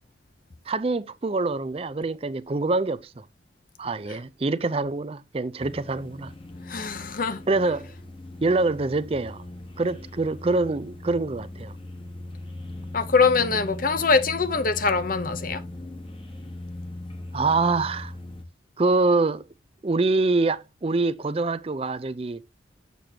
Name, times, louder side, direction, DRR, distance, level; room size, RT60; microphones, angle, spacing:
voice 1, 0.7-3.2 3.8-6.3 7.5-7.9 8.4-9.4 9.8-11.7 17.3-18.1 18.8-19.4 19.8-22.4, right 3 dB, 30° right, 0.5 m, -25 dB
sound 1, 5.6-18.4, left 1 dB, 30° left, 1.4 m, -39 dB
voice 2, 6.7-7.4 12.9-15.6, left 4 dB, 50° left, 0.7 m, -23 dB
7.6 x 6.8 x 2.8 m
head